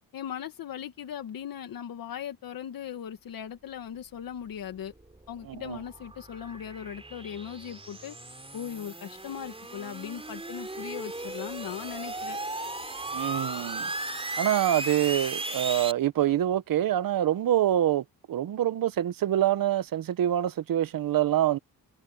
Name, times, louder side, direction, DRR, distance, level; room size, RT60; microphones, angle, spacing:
voice 1, 0.1-4.9 5.3-8.1 8.5-12.4, left 9 dB, 75° left, 1.7 m, -38 dB
sound 1, 4.6-15.9, right 2 dB, 15° right, 3.8 m, -37 dB
voice 2, 5.5-5.8 13.1-13.9 14.4-21.6, right 12 dB, 75° right, 1.1 m, -26 dB
cardioid pair, 75°, 35 cm